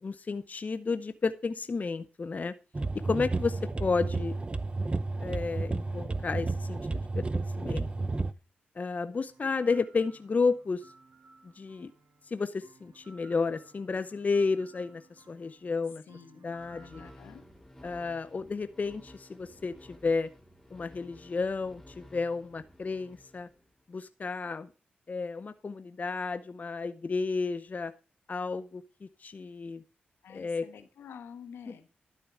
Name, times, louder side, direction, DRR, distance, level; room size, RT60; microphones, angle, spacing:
voice 1, 0.0-2.5 2.9-4.4 5.2-7.9 8.8-10.8 11.4-11.9 12.3-16.0 16.4-17.0 17.8-20.3 20.7-23.5 23.9-24.7 25.1-27.9 28.3-29.8 30.3-30.7, left 4 dB, 45° left, 12 dB, 0.7 m, -32 dB
sound 1, 2.7-8.3, right 3 dB, 30° right, 0.7 m, -32 dB
voice 2, 3.8-4.4 16.1-17.4 30.2-31.9, left 7 dB, 85° left, 9 dB, 1.3 m, -49 dB
sound 2, 9.2-17.2, right 3 dB, 60° right, 2.7 m, -58 dB
sound 3, 16.5-23.9, left 1 dB, 5° left, 4.0 m, -54 dB
12.0 x 6.8 x 4.8 m, 0.31 s
cardioid pair, 60°, 4 cm